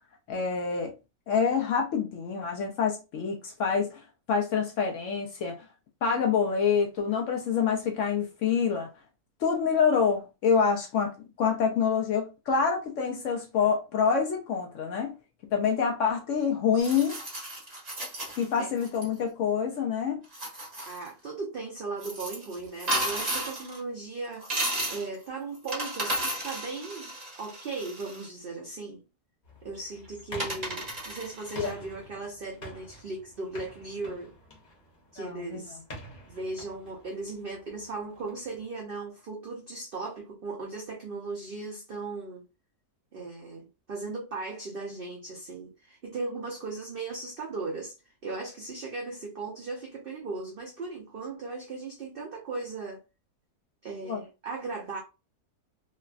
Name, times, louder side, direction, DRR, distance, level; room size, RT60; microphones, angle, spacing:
voice 1, 0.3-0.9 1.3-5.6 6.0-8.9 9.4-11.1 11.4-15.1 15.5-17.2 18.4-20.2 31.6-31.7 35.2-35.6 54.0-54.2, left 6 dB, 70° left, 0.7 m, -26 dB
sound 1, 16.8-19.0 20.2-21.1 22.0-23.8 24.4-25.1 25.5-28.3 29.7-29.8 30.4-31.7, right 1 dB, 30° right, 1.1 m, -34 dB
voice 2, 20.9-24.5 24.9-29.0 29.6-34.3 35.1-35.8 36.3-42.4 43.1-48.0 48.2-53.0 53.8-55.0, right 3 dB, 80° right, 0.5 m, -37 dB
sound 2, 29.4-38.7, equal, 30° left, 1.0 m, -48 dB
3.1 x 2.2 x 2.3 m
omnidirectional pair, 1.7 m